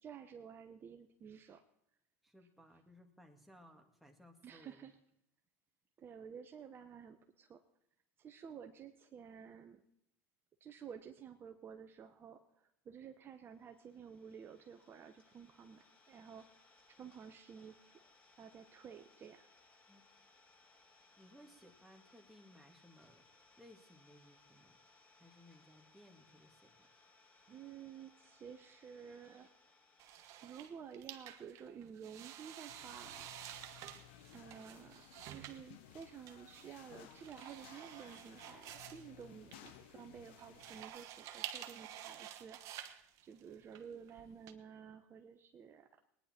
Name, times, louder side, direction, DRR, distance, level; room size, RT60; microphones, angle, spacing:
voice 1, 0.0-1.6 4.4-4.9 6.0-7.6 8.2-9.8 10.6-16.5 17.0-17.9 18.4-19.5 27.5-29.5 30.4-33.4 34.3-45.9, right 7 dB, 35° right, 6 dB, 1.0 m, -52 dB
voice 2, 2.2-4.8 19.9-20.1 21.2-23.3 23.6-24.8 25.2-26.9, equal, ahead, 2 dB, 2.2 m, -61 dB
Idling, 13.5-31.2, left 3 dB, 30° left, 5.4 m, -67 dB
sound 1, 30.0-44.5, right 11 dB, 55° right, 1.2 m, -51 dB
sound 2, 32.7-40.8, left 11 dB, 75° left, 1.0 m, -59 dB
20.0 x 10.0 x 4.5 m, 0.75 s
hypercardioid pair, 90°, 6 cm